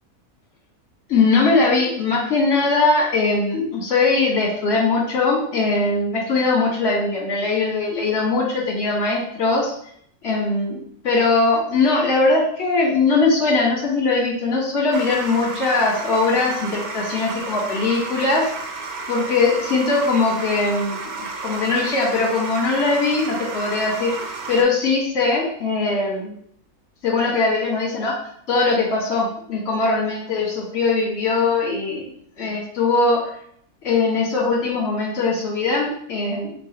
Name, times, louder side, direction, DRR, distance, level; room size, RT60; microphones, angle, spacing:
voice 1, 1.1-9.7 10.2-18.5 19.1-24.1 24.5-26.3 27.0-28.1 28.5-32.0 32.4-33.2 33.8-36.5, left 3 dB, 65° left, -7 dB, 1.8 m, -20 dB
sound 1, 14.9-24.6, right 3 dB, 75° right, 1.1 m, -32 dB
4.8 x 2.5 x 3.9 m, 0.66 s
omnidirectional pair, 1.6 m